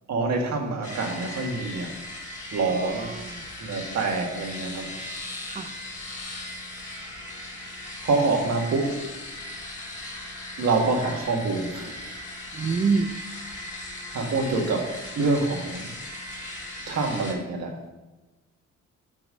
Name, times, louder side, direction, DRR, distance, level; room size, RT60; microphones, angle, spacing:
voice 1, 0.1-1.9 2.5-3.1 3.6-4.9 8.0-8.9 10.6-12.0 14.1-15.9 16.9-17.7, right 3 dB, 60° right, 1 dB, 1.7 m, -26 dB
sound 1, 0.8-17.3, left 1 dB, 25° left, 2.3 m, -38 dB
voice 2, 2.7-3.5 5.5-5.8 12.5-13.2, right 4 dB, 25° right, 12 dB, 0.5 m, -27 dB
9.0 x 3.0 x 6.2 m, 1.1 s
cardioid pair, 90°, 30 cm